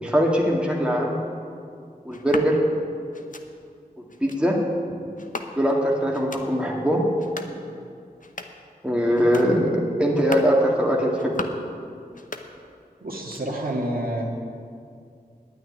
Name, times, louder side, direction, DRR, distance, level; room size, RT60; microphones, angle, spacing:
voice 1, 0.0-1.2 2.0-2.6 4.2-4.6 5.6-7.0 8.8-11.4, equal, 5° right, -2 dB, 2.0 m, -21 dB
sound 1, 2.1-2.5 3.1-3.5 4.1-4.4 5.2-5.8 6.1-6.5 7.1-7.6 8.1-8.7 9.1-9.5 10.1-10.6 11.1-11.7 12.1-12.8 13.1-13.7, left 3 dB, 55° left, 0.9 m, -37 dB
voice 2, 13.0-14.2, right 1 dB, 70° right, -2 dB, 2.1 m, -28 dB
9.4 x 9.4 x 9.7 m, 2.3 s
wide cardioid pair, 60°, 16 cm